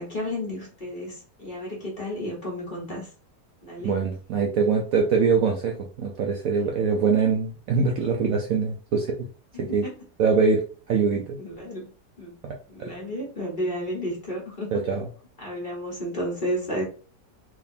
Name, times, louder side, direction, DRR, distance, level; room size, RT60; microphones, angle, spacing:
voice 1, 0.0-3.1 3.6-3.9 9.7-9.9 11.4-11.9 12.2-12.4 12.7-14.8 15.4-16.8, equal, 30° left, -4 dB, 1.2 m, -32 dB
voice 2, 3.8-9.3 9.6-9.8 10.2-10.6 10.9-11.4 12.4-12.9 14.7-15.1, right 5 dB, 70° right, 2 dB, 0.8 m, -23 dB
3.6 x 2.8 x 2.6 m, 0.38 s
omnidirectional pair, 1.8 m